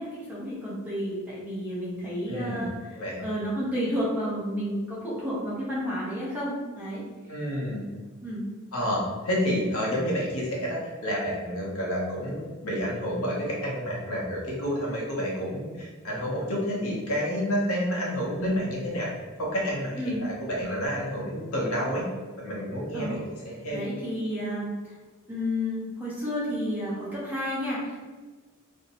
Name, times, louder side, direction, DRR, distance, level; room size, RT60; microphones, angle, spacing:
voice 1, 0.0-3.0 3.2-7.0 8.2-8.5 20.0-20.2 22.9-23.2 23.7-24.7 25.3-28.0, equal, 10° right, -8 dB, 0.7 m, -31 dB
voice 2, 2.3-2.7 2.9-3.2 7.3-7.9 8.7-19.1 19.4-22.1 22.4-23.2 23.6-23.8, equal, 80° left, -4 dB, 0.8 m, -29 dB
2.5 x 2.1 x 2.8 m, 1.4 s
head